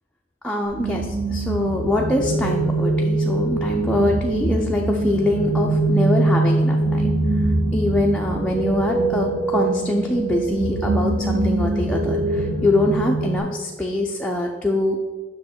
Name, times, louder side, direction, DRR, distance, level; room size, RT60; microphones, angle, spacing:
voice 1, 0.4-7.0 7.7-15.0, left 1 dB, 5° left, -1 dB, 0.5 m, -23 dB
sound 1, 0.7-13.4, right 2 dB, 70° right, 2.1 m, -23 dB
7.8 x 6.2 x 4.3 m, 1.4 s
head